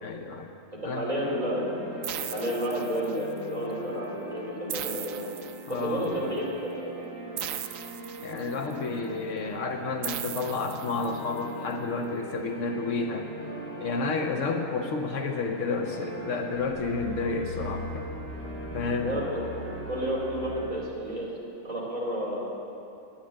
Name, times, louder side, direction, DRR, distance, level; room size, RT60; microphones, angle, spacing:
voice 1, 0.0-0.5 0.8-1.1 5.7-6.3 8.2-13.3 13.8-18.1 18.7-19.2, left 3 dB, 70° left, 4 dB, 1.1 m, -31 dB
voice 2, 0.7-1.9 2.3-5.3 5.7-6.9 19.0-19.4 19.9-21.3 21.6-22.5, equal, 30° right, -4 dB, 2.8 m, -31 dB
sound 1, 1.1-20.7, right 1 dB, 10° left, 3.6 m, -41 dB
sound 2, 2.0-3.4 4.7-6.1 7.4-8.7 10.0-11.4, right 10 dB, 80° right, 1.0 m, -38 dB
sound 3, 16.6-20.9 21.4-21.5, equal, 50° left, 0.7 m, -40 dB
10.0 x 8.9 x 8.6 m, 2.7 s
omnidirectional pair, 1.4 m